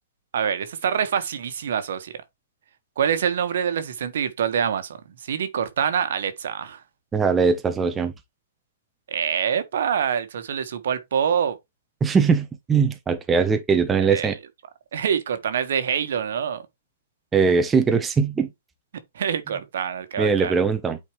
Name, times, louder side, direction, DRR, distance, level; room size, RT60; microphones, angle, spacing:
voice 1, 0.3-2.1 3.0-6.8 9.1-11.6 14.0-14.3 14.9-16.6 19.1-20.5, right 8 dB, 65° right, 1.3 m, -25 dB
voice 2, 7.1-8.1 12.0-14.4 17.3-18.5 20.2-21.0, right 5 dB, 15° right, 0.7 m, -21 dB
8.9 x 4.3 x 3.1 m
hypercardioid pair, 135°, 0 cm